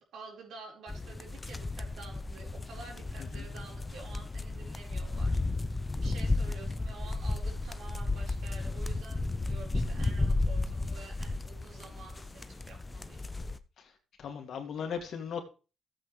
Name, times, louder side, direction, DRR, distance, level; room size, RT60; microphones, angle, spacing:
voice 1, 0.1-13.2, right 4 dB, 75° right, 0 dB, 4.8 m, -50 dB
sound 1, 0.9-13.6, left 2 dB, 20° left, 0.7 m, -33 dB
voice 2, 14.2-15.4, left 7 dB, 65° left, 4 dB, 2.5 m, -38 dB
15.0 x 7.9 x 3.4 m, 0.34 s
cardioid pair, 90°, 0 cm